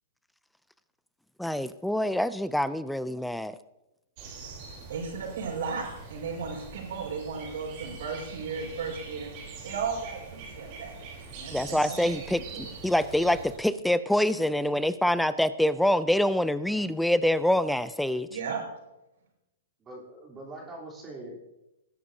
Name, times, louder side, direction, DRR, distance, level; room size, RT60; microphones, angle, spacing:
voice 1, 1.4-3.6 11.5-18.3, left 1 dB, ahead, 15 dB, 0.4 m, -26 dB
sound 1, 4.2-13.6, right 4 dB, 45° right, 3.6 m, -43 dB
voice 2, 4.9-9.3 9.6-10.9 11.3-12.7 18.3-18.6, right 5 dB, 70° right, 0 dB, 5.3 m, -35 dB
voice 3, 19.8-21.4, right 2 dB, 20° right, -3 dB, 3.5 m, -42 dB
19.5 x 10.0 x 2.8 m, 0.93 s
hypercardioid pair, 135°, 0 cm